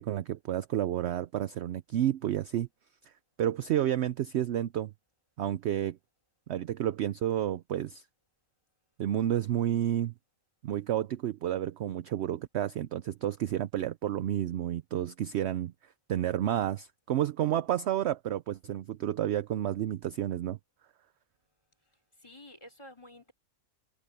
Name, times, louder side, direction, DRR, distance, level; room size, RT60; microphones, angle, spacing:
voice 1, 0.0-2.7 3.4-4.9 5.4-6.0 6.5-8.0 9.0-10.1 10.6-15.7 16.1-20.6, right 11 dB, 65° right, 0.7 m, -30 dB
voice 2, 21.8-23.3, left 1 dB, 20° left, 5.0 m, -52 dB
omnidirectional pair, 1.5 m